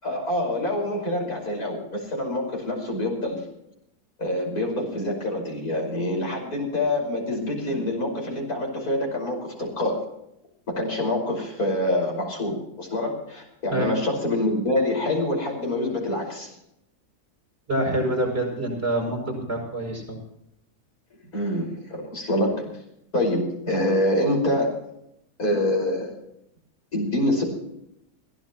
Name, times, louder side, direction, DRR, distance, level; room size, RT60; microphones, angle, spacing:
voice 1, 0.0-3.4 4.2-10.0 10.7-16.5 21.3-22.7 23.1-24.7 25.4-26.1 26.9-27.4, left 1 dB, 85° left, 1 dB, 5.9 m, -26 dB
voice 2, 17.7-20.2, right 1 dB, 45° right, 0 dB, 7.7 m, -26 dB
22.5 x 16.5 x 3.1 m, 0.79 s
omnidirectional pair, 1.5 m